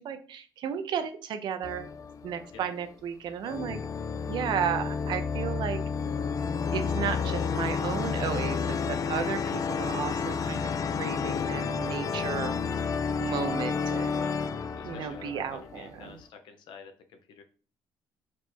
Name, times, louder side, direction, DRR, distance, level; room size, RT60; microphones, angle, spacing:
voice 1, 0.0-1.9 2.2-3.8 4.3-5.8 6.7-10.7 11.0-12.5 13.2-14.1 14.8-16.2, right 8 dB, 70° right, 8 dB, 0.6 m, -33 dB
sound 1, 1.6-2.8 3.5-16.1, left 5 dB, 45° left, 0.4 m, -31 dB
voice 2, 13.8-14.4 14.7-17.4, left 5 dB, 75° left, 6 dB, 0.9 m, -48 dB
4.5 x 2.1 x 4.4 m, 0.39 s
supercardioid pair, 75°, 8 cm